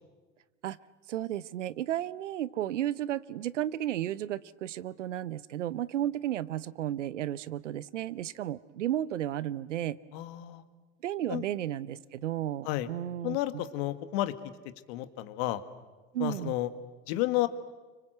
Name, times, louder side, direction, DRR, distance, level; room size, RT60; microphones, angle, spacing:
voice 1, 1.1-10.0 11.0-13.6 16.1-16.5, right 12 dB, 80° right, 19 dB, 0.8 m, -33 dB
voice 2, 10.1-10.6 11.3-11.4 12.6-12.9 13.2-14.3 14.9-15.6 16.2-16.7 17.1-17.5, left 16 dB, 60° left, 11 dB, 1.8 m, -31 dB
29.5 x 25.0 x 7.9 m, 1.3 s
hypercardioid pair, 80°, 36 cm